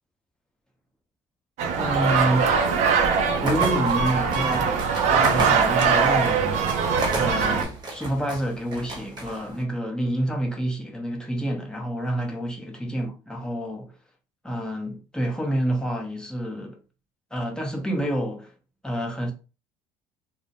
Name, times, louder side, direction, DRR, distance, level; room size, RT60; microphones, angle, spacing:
sound 1, 1.6-7.7, right 6 dB, 60° right, 0.6 m, -22 dB
voice 1, 1.8-2.6 3.4-6.8 7.1-13.9 14.4-16.8 17.3-18.5 18.8-19.3, right 1 dB, 5° left, 0.8 m, -28 dB
sound 2, 3.4-9.6, right 2 dB, 30° right, 1.0 m, -33 dB
2.1 x 2.1 x 2.8 m
supercardioid pair, 80°, 13 cm